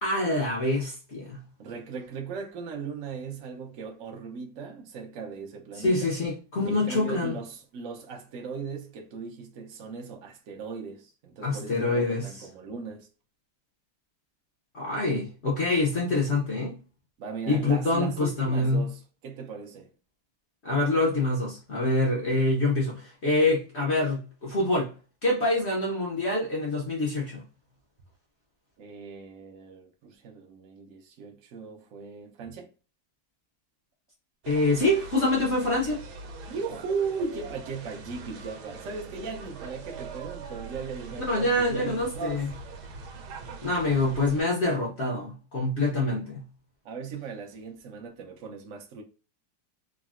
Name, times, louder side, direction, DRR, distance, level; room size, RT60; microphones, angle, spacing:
voice 1, 0.0-1.4 5.8-7.3 11.4-12.3 14.7-16.8 17.5-18.9 20.6-24.9 25.2-27.4 34.5-36.0 41.3-42.5 43.6-46.4, left 2 dB, 65° left, 0.6 m, -26 dB
voice 2, 1.6-6.1 6.6-13.1 17.2-19.9 28.8-32.7 36.5-42.5 46.8-49.0, right 5 dB, 75° right, 0.7 m, -37 dB
sound 1, 34.4-44.4, right 4 dB, 90° right, 1.4 m, -42 dB
3.7 x 2.0 x 2.4 m
omnidirectional pair, 2.2 m